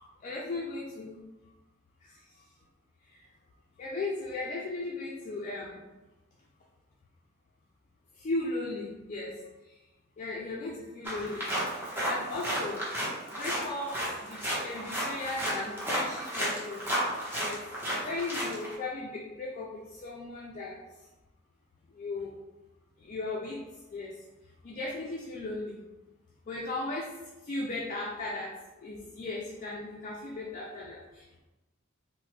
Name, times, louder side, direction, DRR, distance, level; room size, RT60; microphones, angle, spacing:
voice 1, 0.2-1.2 2.0-2.4 3.1-3.3 3.8-5.9 8.1-9.4 9.6-9.7 10.2-11.5 12.0-12.9 13.3-17.6 18.0-20.8 21.9-22.3 23.0-23.6 23.9-24.2 24.6-25.9 26.5-27.1 27.4-28.5 28.8-31.4, left 2 dB, 35° left, -3 dB, 0.3 m, -37 dB
sound 1, 11.0-18.7, equal, 10° right, 0.7 m, -33 dB
2.9 x 2.1 x 2.9 m, 1.1 s
head